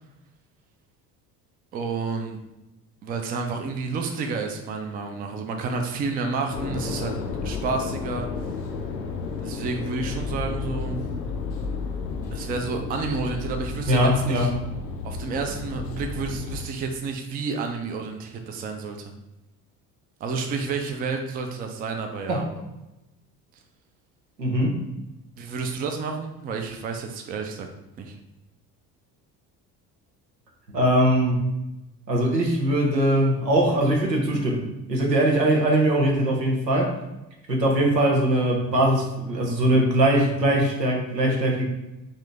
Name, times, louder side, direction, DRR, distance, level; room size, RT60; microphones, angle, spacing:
voice 1, 1.7-2.4 3.0-7.2 7.4-8.3 9.4-11.0 12.3-14.5 15.0-19.1 20.2-22.5 25.4-27.7 28.0-28.2, right 4 dB, 20° right, 4 dB, 0.4 m, -30 dB
sound 1, 6.5-16.6, left 4 dB, 75° left, 0.6 m, -32 dB
voice 2, 13.9-14.5 22.3-22.4 24.4-24.8 30.7-31.4 32.1-36.9 37.5-41.6, right 1 dB, 90° right, -1 dB, 0.7 m, -21 dB
3.6 x 2.6 x 3.3 m, 0.97 s
figure-of-eight pair, 55°, 49 cm